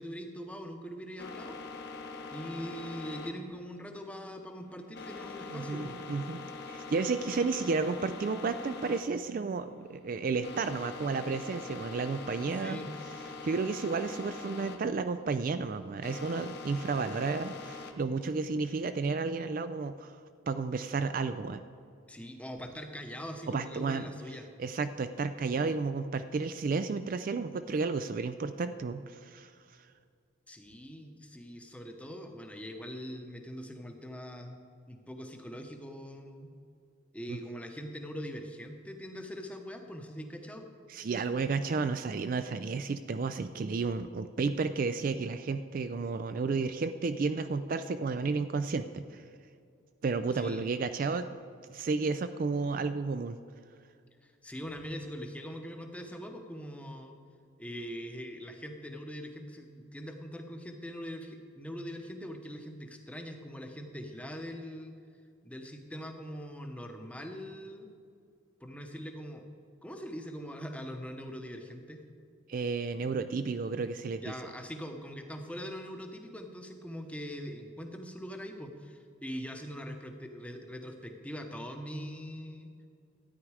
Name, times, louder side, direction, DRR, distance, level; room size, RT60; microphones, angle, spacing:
voice 1, 0.0-1.6 2.3-6.0 12.6-12.9 22.1-24.5 30.5-34.6 34.9-36.5 37.1-40.7 50.3-50.7 54.2-57.2 57.6-64.9 65.4-67.9 68.6-69.5 69.8-72.0 74.2-82.7, equal, 5° left, 5 dB, 0.8 m, -42 dB
sound 1, 1.2-17.9, left 4 dB, 55° left, 1.0 m, -44 dB
voice 2, 5.5-12.8 13.4-20.1 20.5-21.6 23.5-24.1 24.6-29.5 37.3-37.4 40.9-49.2 50.0-51.3 51.7-53.4 72.5-74.3, right 4 dB, 45° right, 10 dB, 0.3 m, -32 dB
13.0 x 9.3 x 4.8 m, 2.3 s
head